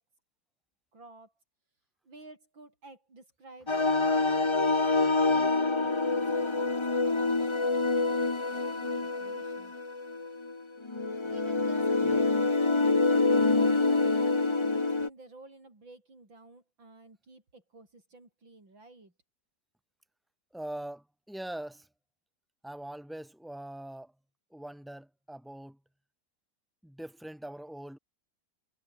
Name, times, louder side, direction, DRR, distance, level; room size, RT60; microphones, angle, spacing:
voice 1, 0.9-1.3 2.0-6.7 7.0-7.5 7.9-9.7 11.3-12.3 12.8-13.0 13.5-14.1 14.7-19.1, right 2 dB, 80° right, 7.4 m, -52 dB
sound 1, 3.7-15.1, left 3 dB, 20° left, 1.0 m, -26 dB
voice 2, 20.5-21.9 22.6-24.1 24.5-25.8 26.8-28.0, right 1 dB, ahead, 6.5 m, -42 dB
omnidirectional pair, 2.1 m